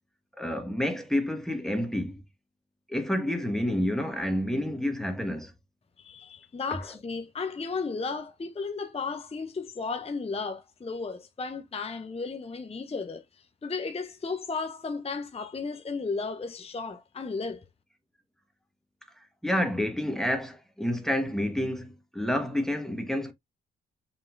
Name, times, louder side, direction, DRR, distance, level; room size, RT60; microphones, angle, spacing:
voice 1, 0.4-2.2 2.9-5.5 19.4-23.3, left 1 dB, ahead, 1.4 m, -29 dB
voice 2, 6.0-17.6, left 4 dB, 20° left, 0.7 m, -34 dB
5.5 x 3.5 x 2.5 m
hypercardioid pair, 45°, 32 cm